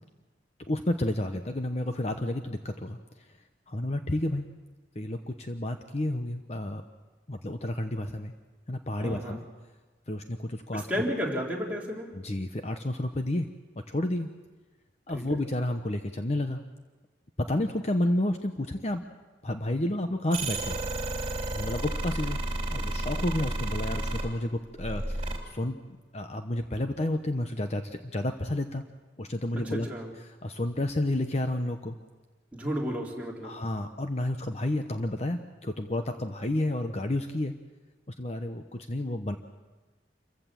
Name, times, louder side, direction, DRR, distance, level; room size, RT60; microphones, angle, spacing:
voice 1, 0.7-3.0 3.7-4.5 4.9-6.8 7.3-8.3 8.7-9.4 10.1-10.9 12.1-13.5 13.9-14.3 15.1-16.6 17.4-19.0 19.4-20.8 21.5-22.4 22.7-25.8 26.1-28.8 29.2-29.9 30.2-32.0 33.4-37.5 38.2-39.4, left 1 dB, 40° left, 6 dB, 0.9 m, -30 dB
voice 2, 9.0-9.4 10.7-12.1 15.1-15.4 29.7-30.1 32.5-33.5, equal, 10° right, -3 dB, 3.9 m, -32 dB
sound 1, 20.3-24.3 24.8-25.4, right 1 dB, 35° right, 3.2 m, -31 dB
27.5 x 15.0 x 7.6 m, 1.3 s
head